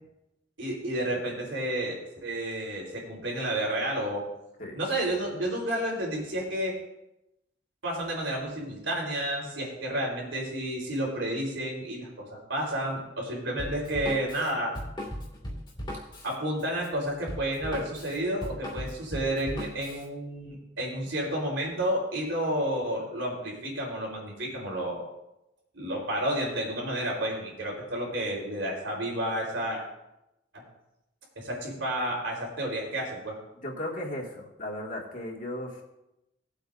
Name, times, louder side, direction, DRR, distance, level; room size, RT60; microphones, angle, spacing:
voice 1, 0.6-2.0 2.2-4.2 4.7-6.7 7.8-14.7 16.2-25.0 25.7-29.8 30.5-30.6 31.4-33.4, right 1 dB, 90° right, -2 dB, 4.0 m, -31 dB
Drum kit, 13.6-20.1, equal, 25° left, 2.2 m, -38 dB
voice 2, 33.6-35.8, left 1 dB, 45° left, -1 dB, 2.0 m, -36 dB
20.0 x 8.1 x 2.6 m, 0.90 s
head